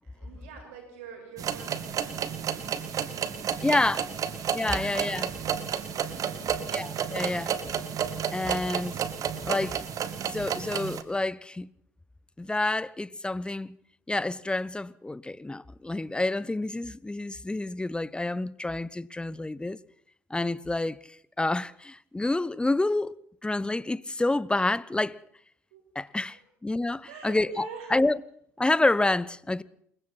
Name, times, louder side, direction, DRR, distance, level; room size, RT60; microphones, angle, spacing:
voice 1, 0.0-4.0 6.1-6.8 25.7-25.8 26.3-26.4 27.1-27.9, right 6 dB, 75° right, 5.8 m, -46 dB
sound 1, 1.4-11.0, right 8 dB, 50° right, 2.0 m, -31 dB
voice 2, 3.6-4.1 4.5-5.3 6.7-7.6 8.3-9.0 9.4-9.8 10.3-11.7 12.4-13.8 14.1-19.8 20.3-23.1 23.4-25.2 25.9-28.2 28.6-29.6, left 2 dB, 10° left, 1.1 m, -28 dB
Human voice, 4.6-5.3 6.5-7.6 8.3-8.4 9.3-10.0, left 9 dB, 65° left, 4.2 m, -51 dB
28.0 x 23.0 x 4.4 m
figure-of-eight pair, 55°, 8 cm